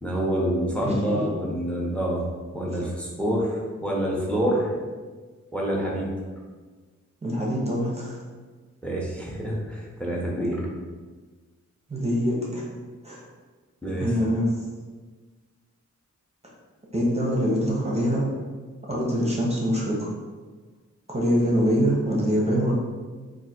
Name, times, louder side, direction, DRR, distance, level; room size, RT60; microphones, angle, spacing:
voice 1, 0.0-2.2 2.5-4.7 5.5-6.1 8.8-10.7 13.8-14.1, equal, 5° left, -3 dB, 0.9 m, -27 dB
voice 2, 0.8-1.2 7.2-8.2 11.9-12.7 13.0-13.2 14.0-14.5 16.9-18.2 18.9-20.1 21.1-22.7, equal, 20° right, -4 dB, 0.9 m, -24 dB
3.6 x 2.6 x 4.3 m, 1.4 s
wide cardioid pair, 90°, 29 cm